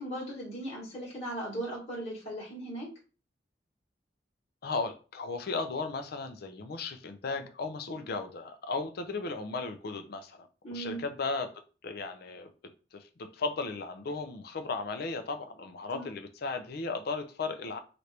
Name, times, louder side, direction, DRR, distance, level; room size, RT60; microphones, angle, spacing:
voice 1, 0.0-2.9 10.6-11.0 15.9-16.1, right 1 dB, 35° left, 1.4 m, -38 dB
voice 2, 4.6-11.5 11.8-12.5 12.9-17.8, left 3 dB, 60° left, 0.5 m, -36 dB
2.9 x 2.5 x 3.3 m
head